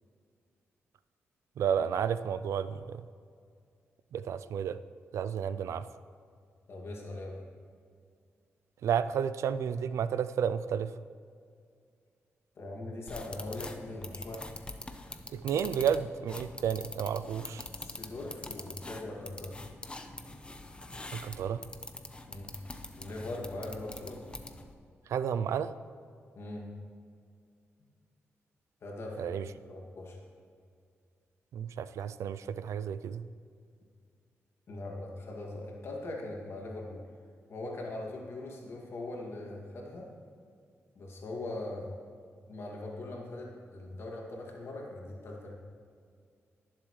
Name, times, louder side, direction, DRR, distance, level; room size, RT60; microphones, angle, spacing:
voice 1, 1.6-3.0 4.1-4.8 5.1-5.8 8.8-10.9 15.3-17.7 21.1-21.6 25.1-25.7 29.2-29.4 31.5-33.2, right 8 dB, 85° right, 13 dB, 0.4 m, -31 dB
voice 2, 6.7-7.5 12.6-14.5 17.8-19.6 22.3-22.5 23.0-24.2 26.3-26.7 28.8-30.2 34.7-37.0 37.5-40.1 40.9-41.9 42.5-45.5, left 2 dB, 60° left, -2 dB, 2.4 m, -41 dB
sound 1, 13.1-24.7, left 2 dB, 20° left, 0.8 m, -45 dB
19.0 x 7.3 x 3.2 m, 2.2 s
cardioid pair, 90°, 5 cm